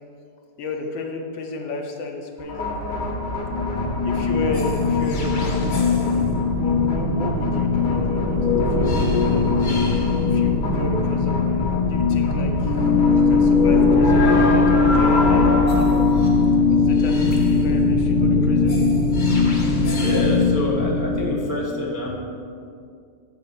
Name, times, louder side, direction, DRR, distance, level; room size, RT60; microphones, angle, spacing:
voice 1, 0.6-3.0 4.0-9.7 10.2-16.1 16.7-18.8, left 3 dB, 85° left, 2 dB, 1.7 m, -33 dB
sound 1, 2.4-21.2, left 4 dB, 40° left, 0.7 m, -21 dB
sound 2, 12.6-21.7, left 4 dB, 60° right, 2.9 m, -21 dB
voice 2, 19.9-22.2, equal, 30° right, -3 dB, 0.3 m, -27 dB
8.3 x 4.2 x 6.9 m, 2.3 s
omnidirectional pair, 2.0 m